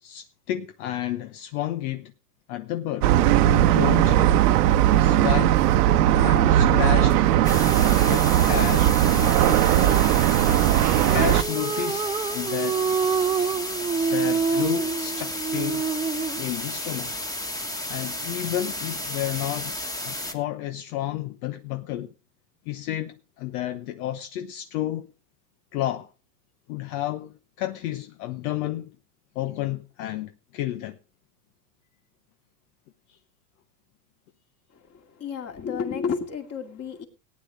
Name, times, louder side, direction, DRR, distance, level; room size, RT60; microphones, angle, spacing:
voice 1, 0.0-2.1 2.5-3.1 3.5-4.3 4.9-5.7 6.2-7.2 8.1-10.1 11.1-13.0 14.1-15.9 16.4-17.2 17.9-22.1 22.7-25.1 25.7-26.1 26.7-28.9 29.3-31.0, left 13 dB, 60° left, 1.0 m, -31 dB
sound 1, 3.0-11.4, right 12 dB, 75° right, 1.1 m, -19 dB
sound 2, 7.4-20.3, left 1 dB, 5° left, 1.6 m, -33 dB
sound 3, 11.1-16.5, right 5 dB, 10° right, 0.8 m, -26 dB
voice 2, 35.2-37.1, left 6 dB, 30° left, 2.4 m, -30 dB
18.5 x 9.7 x 3.3 m
hypercardioid pair, 115°, 48 cm